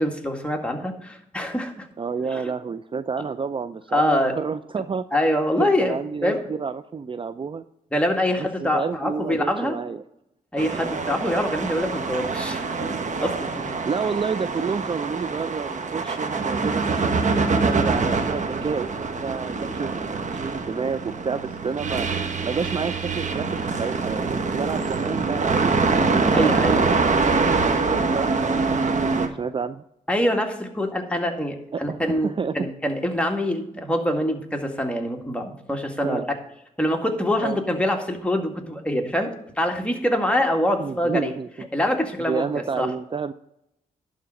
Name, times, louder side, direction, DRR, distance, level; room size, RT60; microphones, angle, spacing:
voice 1, 0.0-1.9 2.3-2.5 3.9-4.4 5.1-5.9 6.2-6.4 7.9-9.8 10.5-13.8 26.3-26.8 30.1-36.2 36.8-41.3 41.7-42.9, left 1 dB, 10° left, 2 dB, 2.0 m, -25 dB
voice 2, 2.0-5.1 5.6-7.6 8.4-10.0 10.7-10.9 13.8-22.1 22.4-25.7 26.2-29.8 31.7-32.6 36.0-36.3 37.4-37.6 40.8-41.5 42.2-43.3, right 5 dB, 35° right, 13 dB, 0.4 m, -30 dB
sound 1, 10.6-29.3, right 4 dB, 55° right, 1.3 m, -25 dB
11.5 x 3.8 x 7.7 m, 0.81 s
supercardioid pair, 50°, 15 cm